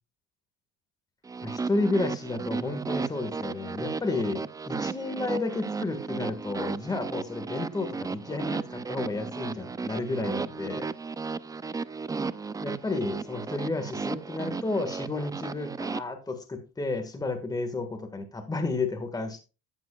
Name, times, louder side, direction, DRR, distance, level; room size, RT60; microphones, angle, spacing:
sound 1, 1.3-16.0, right 4 dB, 10° right, 0.4 m, -34 dB
voice 1, 1.4-10.9 12.6-19.4, left 2 dB, 10° left, 6 dB, 1.6 m, -31 dB
12.5 x 9.4 x 2.3 m, 0.31 s
cardioid pair, 125°, 31 cm